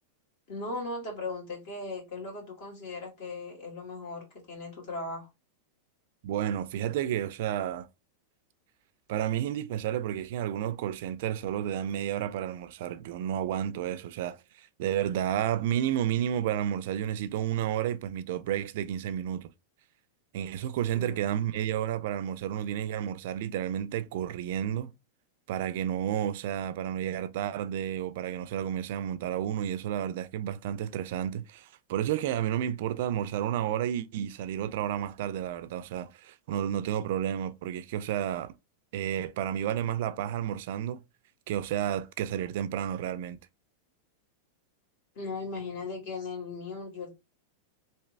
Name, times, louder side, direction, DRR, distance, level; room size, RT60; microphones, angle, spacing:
voice 1, 0.5-5.3 20.9-21.2 45.1-47.1, left 3 dB, 50° left, 2.3 m, -38 dB
voice 2, 6.2-7.9 9.1-19.5 20.3-24.9 25.5-38.5 38.9-41.0 41.5-43.4, right 10 dB, 55° right, 0.4 m, -31 dB
3.3 x 2.8 x 3.2 m
supercardioid pair, 160°, 0 cm